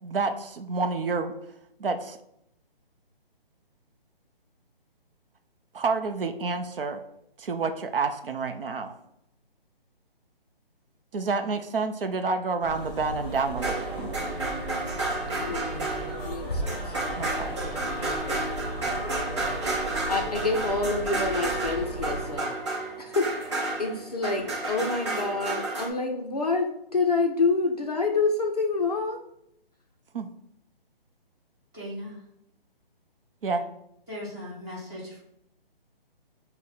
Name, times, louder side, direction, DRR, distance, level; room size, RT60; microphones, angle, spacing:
voice 1, 0.0-1.3 1.8-2.2 5.7-7.0 7.4-8.9 11.1-13.9 17.2-17.6 30.1-30.3 33.4-33.7, right 4 dB, 70° right, 7 dB, 0.5 m, -29 dB
sound 1, 12.6-22.4, right 1 dB, 20° left, 1.3 m, -36 dB
sound 2, 13.5-25.9, right 2 dB, 30° right, 0.8 m, -31 dB
voice 2, 15.4-17.0 17.5-18.1 19.8-22.6 23.1-23.5 23.8-29.2, left 3 dB, 40° left, 2 dB, 0.5 m, -28 dB
voice 3, 31.7-32.2 34.1-35.2, left 1 dB, 10° right, -7 dB, 1.6 m, -38 dB
5.5 x 2.1 x 4.1 m, 0.77 s
hypercardioid pair, 170°, 30 cm